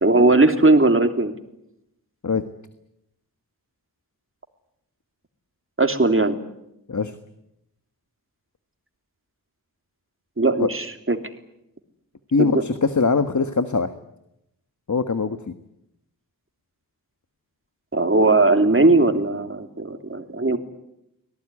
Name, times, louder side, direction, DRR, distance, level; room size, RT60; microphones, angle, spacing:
voice 1, 0.0-1.3 5.8-6.4 10.4-11.2 12.4-12.6 17.9-20.6, right 2 dB, 35° right, 7 dB, 3.0 m, -18 dB
voice 2, 12.3-13.9 14.9-15.4, left 4 dB, 50° left, 10 dB, 1.5 m, -21 dB
25.5 x 18.5 x 9.9 m, 0.84 s
cardioid pair, 50°, 37 cm